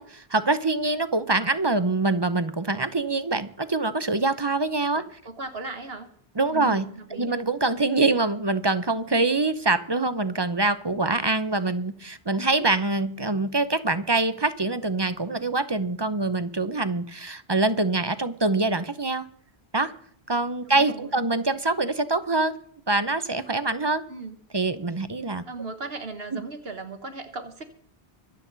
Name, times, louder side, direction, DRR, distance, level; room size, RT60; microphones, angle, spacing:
voice 1, 0.0-5.0 6.4-6.8 7.1-19.3 19.7-19.9 20.3-22.6 22.9-24.0 24.5-25.4 26.3-26.4, right 3 dB, 25° right, 12 dB, 0.7 m, -24 dB
voice 2, 4.9-6.1 6.5-7.4 20.6-21.3 24.1-24.4 25.4-27.6, right 3 dB, 65° right, 7 dB, 1.5 m, -37 dB
25.0 x 8.4 x 4.0 m, 0.65 s
omnidirectional pair, 1.1 m